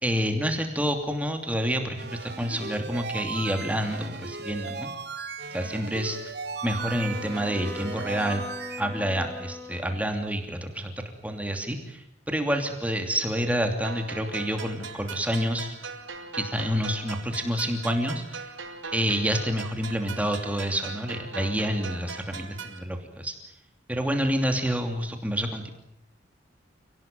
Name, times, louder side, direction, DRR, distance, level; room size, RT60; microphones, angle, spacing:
voice 1, 0.0-4.9 5.5-6.2 6.6-8.4 8.8-10.9 11.2-15.7 16.3-18.5 18.9-23.3 23.9-25.7, equal, 5° right, 4 dB, 2.8 m, -28 dB
sound 1, 2.0-8.8, right 4 dB, 55° right, 2.7 m, -37 dB
Wind instrument woodwind instrument, 6.8-10.3, left 2 dB, 15° left, 4.2 m, -40 dB
sound 2, 13.8-22.8, right 4 dB, 85° right, 6.3 m, -40 dB
29.5 x 19.0 x 9.2 m, 0.81 s
head